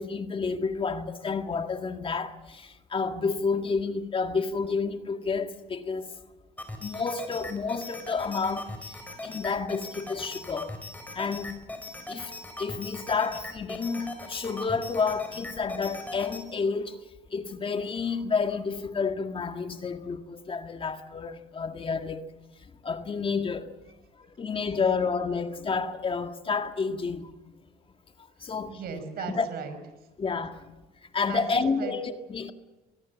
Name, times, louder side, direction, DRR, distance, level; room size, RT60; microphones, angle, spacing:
voice 1, 0.0-6.1 6.8-10.7 11.1-11.6 12.1-12.3 12.6-17.0 17.3-22.3 22.6-23.7 24.2-27.3 28.4-28.8 29.4-29.5 30.2-30.7 31.1-32.5, left 5 dB, 30° left, 1.9 m, -30 dB
sound 1, 6.6-16.4, left 1 dB, 10° left, 5.2 m, -40 dB
voice 2, 28.4-30.1 31.3-31.9, right 5 dB, 65° right, 5.9 m, -38 dB
24.5 x 20.5 x 7.3 m
cardioid pair, 110°, 17 cm